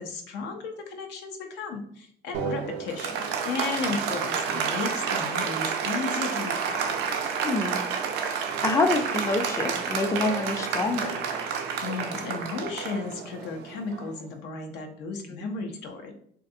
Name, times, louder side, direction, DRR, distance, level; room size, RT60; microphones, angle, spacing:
voice 1, 0.0-7.0 11.8-16.1, left 4 dB, 85° left, 4 dB, 0.5 m, -34 dB
Applause, 2.3-14.2, right 6 dB, 90° right, 0.4 m, -30 dB
voice 2, 7.4-7.8 8.1-11.2 15.3-15.5, left 3 dB, 20° left, 5 dB, 0.3 m, -27 dB
2.4 x 2.4 x 2.6 m, 0.64 s
cardioid pair, 110°, 17 cm